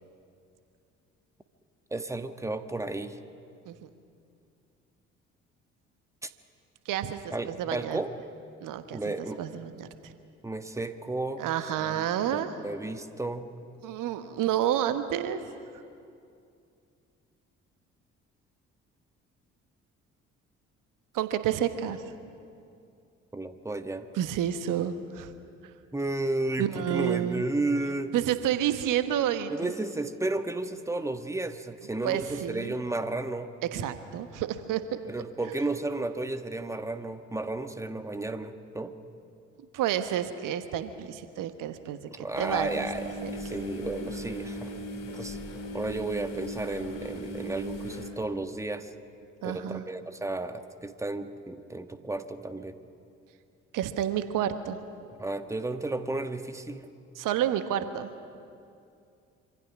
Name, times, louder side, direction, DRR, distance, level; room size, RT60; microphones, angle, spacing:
voice 1, 1.9-3.2 6.2-6.3 7.3-8.1 8.9-9.4 10.4-11.4 11.8-13.5 23.3-24.1 25.9-28.1 29.5-33.5 35.1-38.9 42.2-44.7 45.1-45.4 45.7-48.9 49.4-52.8 55.2-56.9, right 2 dB, 10° right, 8 dB, 1.5 m, -33 dB
voice 2, 6.8-8.0 8.6-10.1 11.4-12.5 13.8-15.4 21.1-22.0 24.1-25.3 26.6-27.5 28.1-29.7 32.0-32.7 33.7-35.0 39.7-42.9 43.2-43.3 49.4-49.8 53.7-54.8 57.2-58.1, right 10 dB, 60° right, 10 dB, 1.3 m, -30 dB
sound 1, 42.3-48.1, left 1 dB, 60° left, 3.0 m, -38 dB
26.0 x 25.5 x 6.0 m, 2.5 s
figure-of-eight pair, 45°, 36 cm